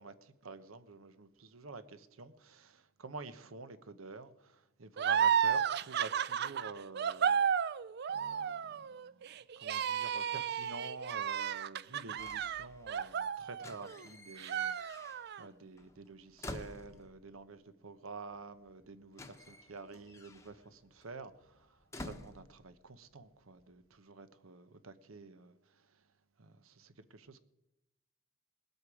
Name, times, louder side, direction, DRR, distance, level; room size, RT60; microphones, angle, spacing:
voice 1, 0.0-7.4 8.1-9.2 9.6-15.0 15.4-21.7 22.0-25.5 26.4-27.4, right 3 dB, 90° right, 0.9 m, -49 dB
sound 1, 5.0-14.0 14.4-15.4, right 8 dB, 55° right, 0.4 m, -33 dB
sound 2, 12.2-13.2 13.5-15.5 15.8-17.4 18.4-18.5 18.7-23.1 23.4-23.9, left 1 dB, 15° left, 0.9 m, -50 dB
20.5 x 8.1 x 4.9 m
head